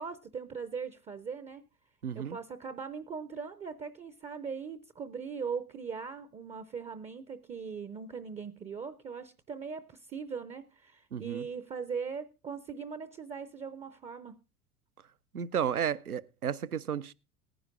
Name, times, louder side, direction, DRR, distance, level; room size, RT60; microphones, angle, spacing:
voice 1, 0.0-1.6 2.1-14.4, right 6 dB, 15° right, 0.5 m, -40 dB
voice 2, 2.0-2.4 11.1-11.5 15.3-17.1, right 8 dB, 85° right, 0.6 m, -33 dB
19.0 x 10.0 x 2.5 m
figure-of-eight pair, 75°, 44 cm